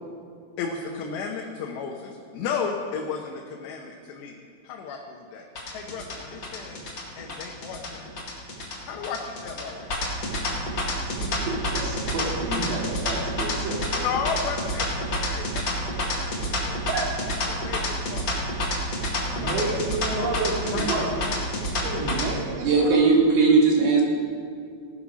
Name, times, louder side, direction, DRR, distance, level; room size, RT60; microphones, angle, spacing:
voice 1, 0.6-4.4 4.6-5.5 5.7-6.8 7.2-8.1 8.8-10.1 14.0-15.6 16.0-16.4 16.7-16.8 17.4-20.3 20.7-21.1, left 6 dB, 85° left, 1 dB, 3.2 m, -34 dB
sound 1, 5.6-22.3, left 1 dB, 40° left, 1.8 m, -28 dB
voice 2, 11.2-14.1 16.9-17.1 19.3-21.0 21.8-23.1, right 3 dB, 80° right, -2 dB, 4.6 m, -30 dB
voice 3, 22.6-24.0, right 4 dB, 60° right, -2 dB, 3.7 m, -18 dB
17.0 x 10.0 x 6.2 m, 2.4 s
omnidirectional pair, 4.8 m